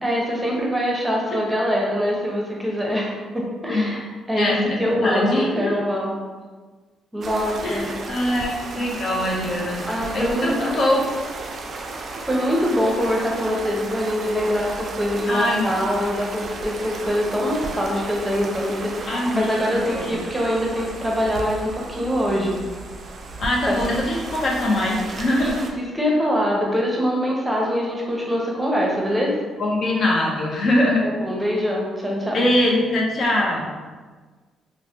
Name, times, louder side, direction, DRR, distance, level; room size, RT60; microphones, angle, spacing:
voice 1, 0.0-4.0 4.3-6.1 7.1-7.9 9.9-10.5 12.2-22.6 23.7-23.8 25.4-29.3 31.0-32.4, equal, 10° right, -2 dB, 0.7 m, -24 dB
voice 2, 4.4-5.9 7.6-11.1 15.3-15.6 19.1-20.1 23.4-25.6 29.6-31.1 32.3-33.7, left 1 dB, 50° left, -2 dB, 0.7 m, -22 dB
sound 1, 7.2-25.7, right 3 dB, 50° right, 0.3 m, -34 dB
3.1 x 2.1 x 2.8 m, 1.4 s
cardioid pair, 90°, 0 cm